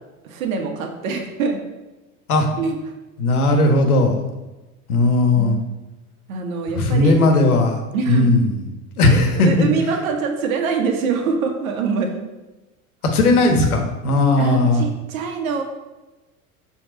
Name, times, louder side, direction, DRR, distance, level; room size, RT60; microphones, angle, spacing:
voice 1, 0.2-1.6 2.6-2.7 5.4-5.6 6.3-7.3 7.9-8.4 9.1-12.1 14.4-15.6, right 5 dB, 70° right, 3 dB, 1.3 m, -24 dB
voice 2, 3.2-4.2 4.9-5.6 6.7-7.8 8.1-8.6 9.0-9.7 13.1-14.8, left 2 dB, 80° left, 4 dB, 1.3 m, -16 dB
7.9 x 3.5 x 5.1 m, 1.1 s
hypercardioid pair, 90°, 44 cm